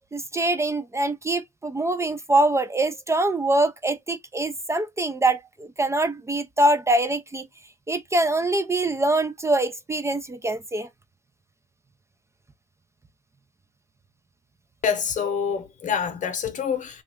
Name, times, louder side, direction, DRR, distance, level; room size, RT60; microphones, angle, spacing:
voice 1, 0.1-7.5 7.9-10.9, right 2 dB, 15° right, 0.5 m, -24 dB
voice 2, 14.8-17.0, left 7 dB, 50° left, 0.9 m, -26 dB
2.7 x 2.4 x 3.3 m
supercardioid pair, 75°, 16 cm